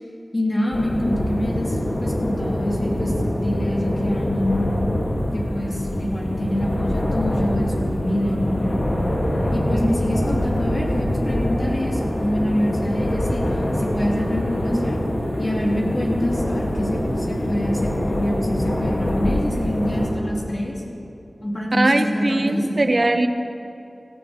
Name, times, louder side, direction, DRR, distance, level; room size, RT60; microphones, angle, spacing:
voice 1, 0.3-4.7 5.3-8.8 9.5-15.0 15.4-20.8 21.4-22.8, left 1 dB, 40° left, -4 dB, 3.2 m, -26 dB
sound 1, 0.7-20.1, left 1 dB, 65° left, 2.8 m, -24 dB
voice 2, 21.7-23.3, right 2 dB, 45° right, 7 dB, 0.9 m, -20 dB
17.0 x 15.5 x 3.6 m, 2.8 s
wide cardioid pair, 55°, 0 cm